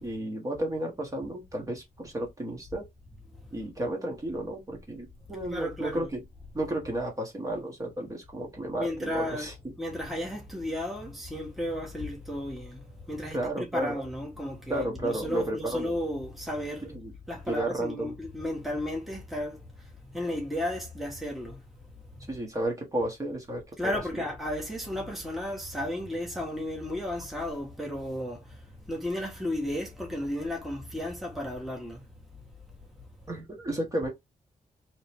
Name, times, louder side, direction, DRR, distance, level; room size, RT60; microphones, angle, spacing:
voice 1, 0.0-2.8 3.5-6.2 6.5-9.5 13.3-14.0 14.7-16.0 16.9-17.1 17.5-18.1 22.3-24.2 33.3-34.1, right 1 dB, 25° right, 1.3 m, -32 dB
voice 2, 5.5-6.1 8.8-9.5 9.8-12.8 13.1-16.9 17.3-19.6 20.1-21.6 23.8-28.4 28.9-32.0, left 1 dB, ahead, 1.2 m, -33 dB
3.8 x 2.9 x 3.4 m
wide cardioid pair, 145°, 14 cm